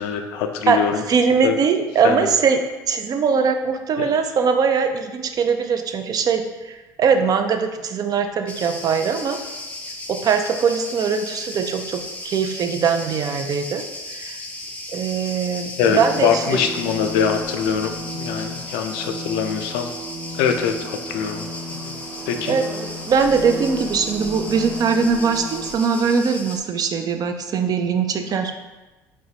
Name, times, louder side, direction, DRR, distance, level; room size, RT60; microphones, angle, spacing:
voice 1, 0.0-1.0 1.4-1.6 2.0-2.3 4.0-4.1 15.8-19.9 20.3-22.0 22.3-22.6, left 7 dB, 75° left, 6 dB, 0.4 m, -23 dB
voice 2, 1.1-2.6 2.9-9.4 10.1-13.8 14.1-14.4 14.9-16.7 22.5-22.6 23.0-28.5, right 6 dB, 45° right, 7 dB, 0.4 m, -21 dB
Cricket, 8.5-26.6, left 1 dB, 15° left, 0.5 m, -35 dB
sound 1, 15.8-25.7, equal, 65° right, 0.8 m, -35 dB
sound 2, 21.1-26.1, right 1 dB, 30° right, 1.2 m, -42 dB
4.2 x 2.1 x 2.7 m, 1.2 s
hypercardioid pair, 60°, 9 cm